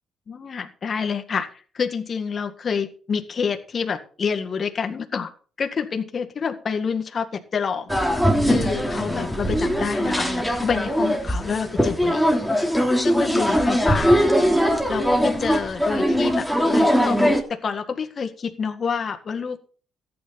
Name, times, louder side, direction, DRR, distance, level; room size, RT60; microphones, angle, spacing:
voice 1, 0.3-5.3 5.6-12.3 13.0-14.2 14.9-16.5 16.7-17.2 17.5-19.6, left 6 dB, 45° left, 7 dB, 1.8 m, -28 dB
sound 1, 7.9-17.4, equal, ahead, 3.2 m, -21 dB
14.0 x 9.6 x 4.2 m, 0.40 s
cardioid pair, 90°, 0 cm